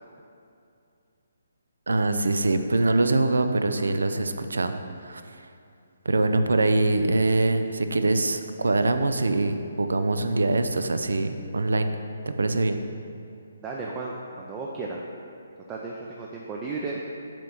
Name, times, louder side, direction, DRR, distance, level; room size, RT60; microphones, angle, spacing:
voice 1, 1.9-4.7 5.0-5.2 6.1-12.0 12.4-12.8, right 2 dB, 80° right, 8 dB, 0.4 m, -23 dB
voice 2, 13.6-15.0 15.7-17.0, right 3 dB, 15° right, -3 dB, 0.5 m, -34 dB
7.3 x 3.0 x 5.5 m, 2.5 s
hypercardioid pair, 150°, 0 cm